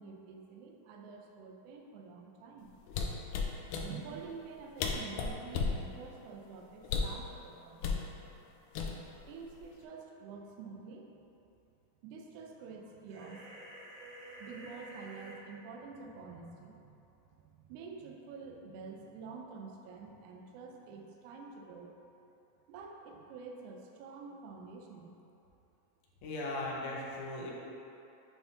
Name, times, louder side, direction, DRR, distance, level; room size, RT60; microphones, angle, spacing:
voice 1, 0.0-2.7 3.0-3.2 3.8-8.5 9.3-11.1 12.0-13.4 14.4-17.0 17.6-21.9 22.7-25.1, right 5 dB, 85° right, 1 dB, 1.7 m, -48 dB
sound 1, 2.9-3.9 4.5-4.6 4.8-5.8 6.8-7.2 7.8-8.0 8.8-9.2 9.6-9.8, left 5 dB, 90° left, 1.7 m, -33 dB
sound 2, 13.1-15.4, right 2 dB, 70° right, 1.6 m, -49 dB
voice 2, 26.2-27.5, left 2 dB, 70° left, -4 dB, 1.9 m, -38 dB
8.5 x 4.8 x 2.7 m, 2.9 s
omnidirectional pair, 4.1 m